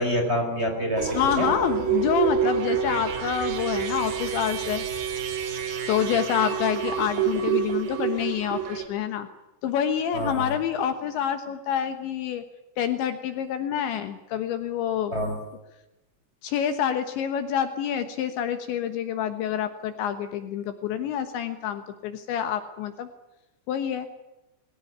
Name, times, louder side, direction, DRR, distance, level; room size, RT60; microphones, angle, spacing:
voice 1, 0.0-1.5 6.0-6.2 10.1-10.5 15.1-15.4, equal, 15° right, 3 dB, 4.2 m, -27 dB
sound 1, 1.0-8.9, right 8 dB, 60° right, 4.1 m, -28 dB
voice 2, 1.2-4.8 5.9-9.3 9.6-12.4 12.8-15.2 16.4-23.1 23.7-24.1, left 9 dB, 70° left, 9 dB, 3.4 m, -27 dB
22.0 x 18.0 x 9.6 m, 0.96 s
omnidirectional pair, 5.8 m